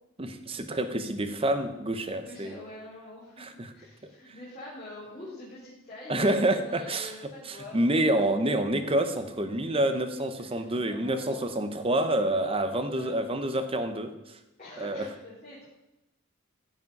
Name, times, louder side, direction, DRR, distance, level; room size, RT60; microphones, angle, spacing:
voice 1, 0.2-2.5 3.4-3.7 6.1-7.1 7.5-14.1 14.8-15.0, right 1 dB, 25° right, 9 dB, 0.8 m, -27 dB
voice 2, 2.1-8.2 10.4-11.5 12.9-13.2 14.6-15.7, left 1 dB, 35° left, -9 dB, 3.5 m, -45 dB
15.5 x 5.2 x 5.3 m, 0.96 s
head